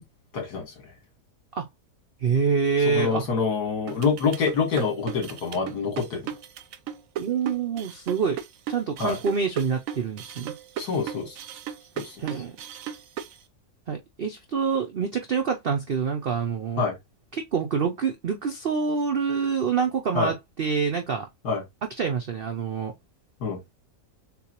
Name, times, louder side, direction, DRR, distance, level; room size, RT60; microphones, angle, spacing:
voice 1, 0.3-0.9 2.9-6.3 9.0-9.2 10.8-11.4 12.0-12.2 16.8-17.0 20.1-20.3 21.4-21.6 23.4-23.6, left 5 dB, 70° left, 2.2 m, -26 dB
voice 2, 2.2-3.2 7.2-8.4 8.7-10.5 12.2-12.5 13.9-16.8 17.3-21.3 22.0-22.9, right 6 dB, 85° right, 0.5 m, -26 dB
sound 1, 3.9-13.4, right 9 dB, 65° right, 0.9 m, -36 dB
6.8 x 2.3 x 2.9 m
omnidirectional pair, 1.8 m